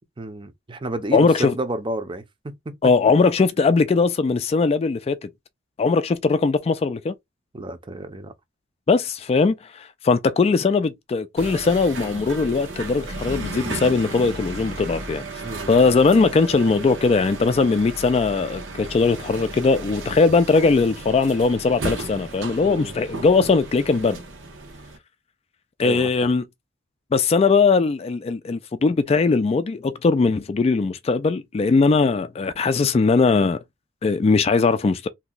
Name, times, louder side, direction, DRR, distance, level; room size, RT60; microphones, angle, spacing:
voice 1, 0.2-2.8 7.5-8.3 15.4-15.9 22.6-22.9 25.8-26.3, right 1 dB, 25° right, 0.6 m, -31 dB
voice 2, 1.1-1.5 2.8-5.3 5.8-7.1 8.9-15.2 15.7-24.2 25.8-26.4 27.1-33.6 34.0-35.1, left 4 dB, 35° left, 0.3 m, -20 dB
sound 1, 11.4-25.0, right 2 dB, 85° right, 1.0 m, -34 dB
2.8 x 2.3 x 3.9 m
head